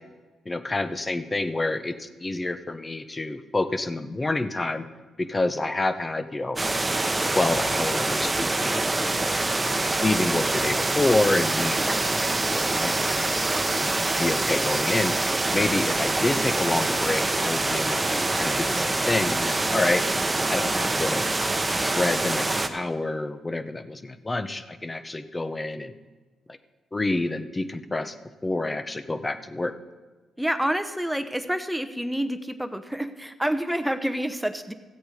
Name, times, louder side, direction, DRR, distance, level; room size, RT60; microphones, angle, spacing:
voice 1, 0.5-4.9 5.2-6.6 7.4-8.9 9.2-9.3 9.8-13.3 13.7-13.9 14.2-20.0 20.5-21.2 21.7-25.9 26.9-28.2 28.4-29.7, left 2 dB, 25° left, 10 dB, 0.8 m, -28 dB
sound 1, 6.6-22.7, right 2 dB, 25° right, 1.0 m, -25 dB
voice 2, 30.4-34.7, equal, 5° right, 9 dB, 0.9 m, -28 dB
15.0 x 7.9 x 5.1 m, 1.3 s
supercardioid pair, 65°, 0 cm